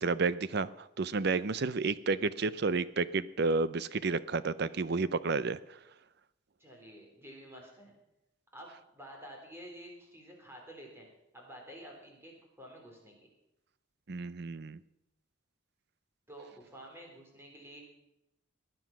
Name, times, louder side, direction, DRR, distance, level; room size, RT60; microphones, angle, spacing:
voice 1, 0.0-5.6 14.1-14.8, right 4 dB, 50° right, 17 dB, 0.6 m, -31 dB
voice 2, 6.6-8.0 8.5-11.1 11.3-13.3 16.3-17.8, equal, 10° right, 0 dB, 3.8 m, -50 dB
18.5 x 10.5 x 6.0 m, 0.89 s
head